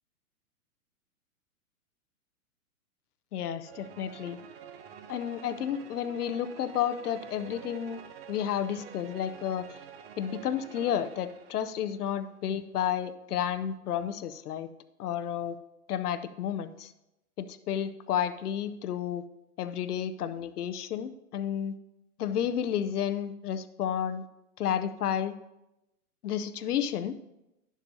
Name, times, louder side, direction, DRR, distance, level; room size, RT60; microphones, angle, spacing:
voice 1, 3.3-4.4 5.1-8.0 8.3-9.7 10.2-14.7 15.0-15.6 15.9-16.9 17.4-19.2 19.6-21.7 22.2-24.2 24.6-25.3 26.2-27.2, left 9 dB, 85° left, 11 dB, 0.7 m, -31 dB
sound 1, 3.6-12.2, right 8 dB, 45° right, 0.6 m, -48 dB
11.5 x 7.3 x 2.7 m, 0.90 s
hypercardioid pair, 150°, 44 cm